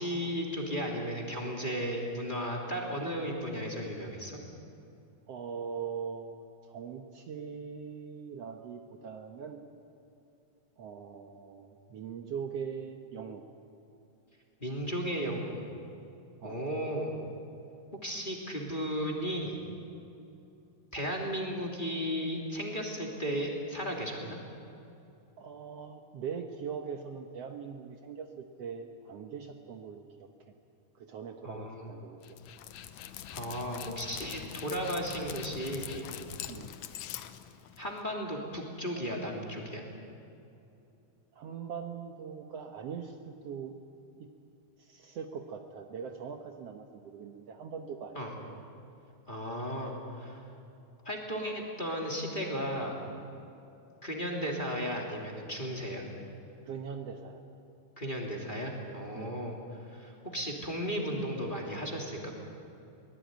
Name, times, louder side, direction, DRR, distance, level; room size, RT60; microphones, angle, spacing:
voice 1, 0.0-4.4 14.6-15.6 16.4-17.1 18.0-19.6 20.9-24.4 31.4-31.9 33.3-36.1 37.8-39.8 48.1-48.4 49.3-50.4 51.0-52.9 54.0-56.0 58.0-59.6 59.9-62.4, equal, 15° left, -1 dB, 2.8 m, -35 dB
voice 2, 5.3-9.6 10.8-13.4 16.4-16.6 25.4-30.3 31.0-32.2 32.5-32.6 36.5-36.7 41.3-43.7 44.2-44.3 44.8-48.4 56.7-57.4 59.1-59.3, right 6 dB, 65° right, 4 dB, 1.9 m, -41 dB
Dog, 32.2-38.0, left 11 dB, 80° left, 2.2 m, -43 dB
23.5 x 19.5 x 9.3 m, 2.7 s
omnidirectional pair, 3.4 m